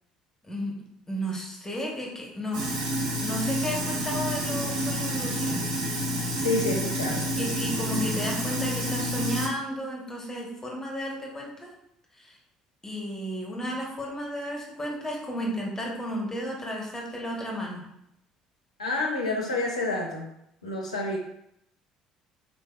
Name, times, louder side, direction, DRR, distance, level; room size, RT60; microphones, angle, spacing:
voice 1, 1.1-2.6 3.2-5.6 7.4-11.7 12.2-12.3 12.8-17.8, equal, 15° left, -1 dB, 1.0 m, -33 dB
Sink (filling or washing), 2.5-9.5, equal, 70° right, 0.8 m, -29 dB
voice 2, 6.4-7.5 18.8-20.2 20.6-21.2, left 2 dB, 80° left, 0 dB, 0.5 m, -29 dB
4.0 x 3.2 x 2.3 m, 0.78 s
figure-of-eight pair, 55°, 3 cm